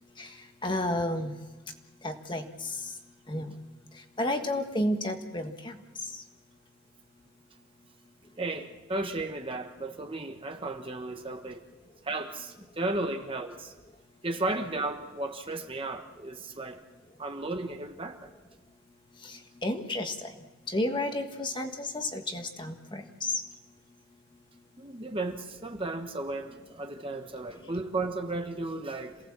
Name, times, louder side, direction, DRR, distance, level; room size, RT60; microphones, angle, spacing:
voice 1, 0.6-1.3 2.0-2.8 3.3-3.5 4.2-5.8 6.1-6.2 19.2-20.3 20.7-23.4, left 1 dB, 20° left, 5 dB, 1.6 m, -31 dB
voice 2, 8.4-11.6 12.0-13.7 14.2-16.8 17.2-18.3 24.8-29.2, right 2 dB, 25° right, 5 dB, 1.3 m, -34 dB
27.5 x 18.0 x 7.4 m, 1.2 s
head